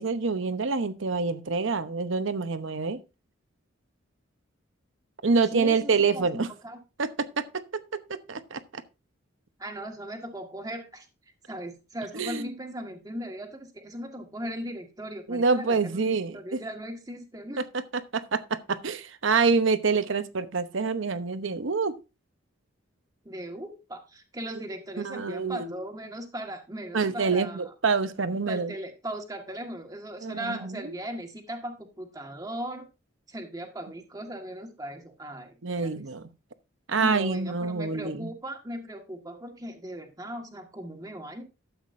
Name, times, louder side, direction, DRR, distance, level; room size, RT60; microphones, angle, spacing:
voice 1, 0.0-3.0 5.2-6.5 7.0-7.4 7.7-8.8 12.1-12.5 15.3-16.6 17.6-22.0 25.0-25.8 26.9-28.7 30.2-30.9 35.6-36.3 36.9-38.3, right 4 dB, 70° right, 0.9 m, -27 dB
voice 2, 5.5-6.8 9.6-11.1 11.5-17.6 23.2-27.6 28.5-32.9 33.3-36.0 36.9-41.4, right 1 dB, 20° right, 1.6 m, -38 dB
12.5 x 8.0 x 2.6 m
head